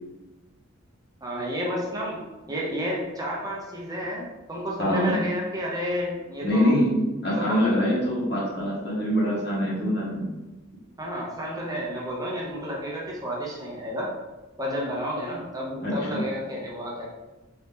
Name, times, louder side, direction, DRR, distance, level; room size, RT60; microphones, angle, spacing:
voice 1, 1.2-6.7 7.3-7.7 11.0-14.1 14.6-17.1, equal, 15° right, -3 dB, 0.6 m, -31 dB
voice 2, 4.8-5.2 6.4-10.3 15.8-16.2, equal, 50° left, -5 dB, 1.4 m, -24 dB
4.1 x 2.7 x 3.5 m, 1.1 s
head